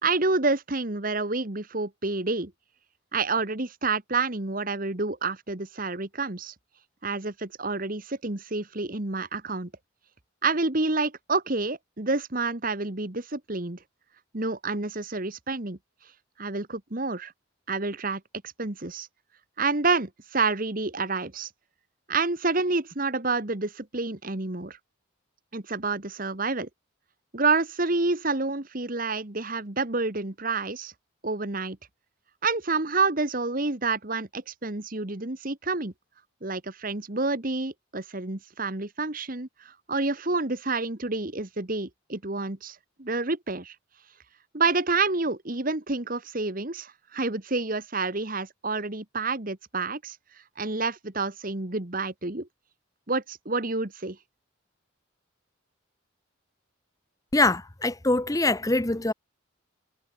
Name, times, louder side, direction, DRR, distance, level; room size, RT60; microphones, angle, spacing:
voice 1, 0.0-2.5 3.1-6.5 7.0-9.7 10.4-13.8 14.3-15.8 16.4-17.3 17.7-18.2 18.6-19.1 19.6-21.5 22.1-24.8 25.5-26.7 27.3-30.9 31.2-31.8 32.4-35.9 36.4-43.7 44.5-50.2 50.6-52.5 53.1-54.2, right 3 dB, 40° right, 1.5 m, -28 dB
voice 2, 57.3-59.1, left 2 dB, 15° left, 0.8 m, -23 dB
head